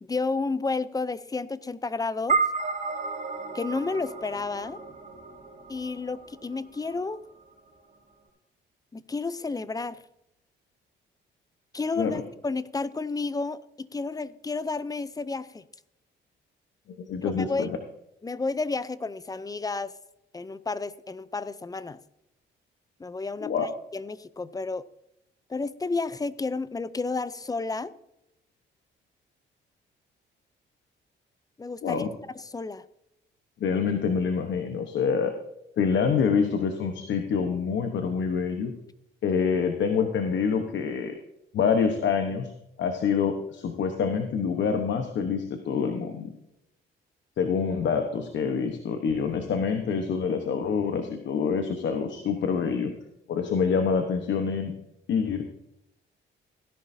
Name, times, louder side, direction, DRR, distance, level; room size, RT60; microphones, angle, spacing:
voice 1, 0.0-2.4 3.5-4.8 5.7-7.2 8.9-10.0 11.7-15.6 17.2-17.7 18.2-19.9 20.3-22.0 23.0-23.5 23.9-24.8 25.5-27.9 31.6-32.0 32.5-32.8, left 3 dB, 20° left, 16 dB, 0.5 m, -31 dB
sound 1, 2.3-6.9, right 4 dB, 40° right, 3.2 m, -31 dB
voice 2, 17.0-17.8 23.4-23.6 31.8-32.1 33.6-35.3 35.8-38.7 39.2-41.1 41.5-42.5 42.8-46.3 47.4-52.9 53.3-54.7 55.1-55.4, left 6 dB, 65° left, 6 dB, 1.1 m, -26 dB
16.0 x 11.0 x 2.7 m, 0.85 s
cardioid pair, 90°, 20 cm